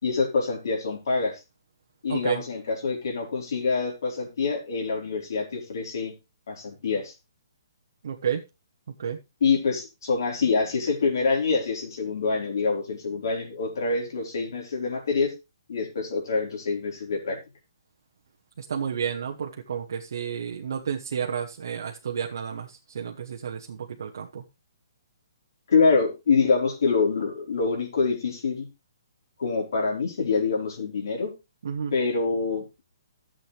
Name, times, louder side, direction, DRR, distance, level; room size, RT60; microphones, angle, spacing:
voice 1, 0.0-1.4 2.0-6.1 6.5-7.1 9.4-15.3 15.7-17.4 25.7-28.7 29.4-31.3 31.9-32.8, left 4 dB, 70° left, 0 dB, 4.3 m, -25 dB
voice 2, 2.1-2.4 8.0-8.4 9.0-9.2 18.6-24.4 31.6-31.9, right 7 dB, 65° right, 1 dB, 1.1 m, -31 dB
12.5 x 7.6 x 3.3 m, 0.26 s
hypercardioid pair, 155°, 2 cm